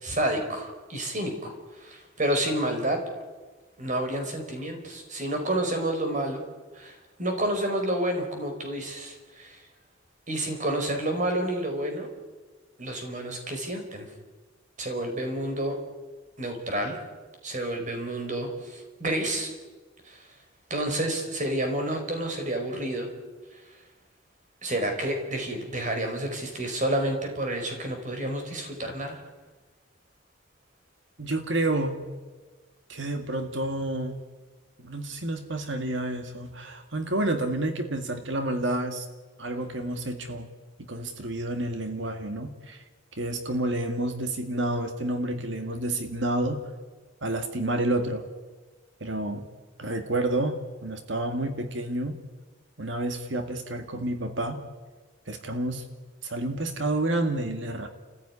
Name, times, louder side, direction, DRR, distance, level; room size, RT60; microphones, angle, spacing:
voice 1, 0.0-3.0 3.8-6.4 6.7-9.6 10.3-12.1 12.8-14.1 14.8-15.8 16.4-17.0 17.4-19.5 20.0-20.2 20.7-23.1 24.6-29.2, right 1 dB, 40° right, 4 dB, 4.7 m, -29 dB
voice 2, 31.2-32.0 32.9-34.2 34.8-39.1 39.4-40.5 40.9-42.8 43.2-46.7 47.2-48.2 49.0-49.5 49.8-52.2 52.8-54.6 55.3-55.8 56.2-57.9, right 1 dB, 70° right, 7 dB, 2.0 m, -29 dB
29.5 x 15.5 x 9.8 m, 1.3 s
head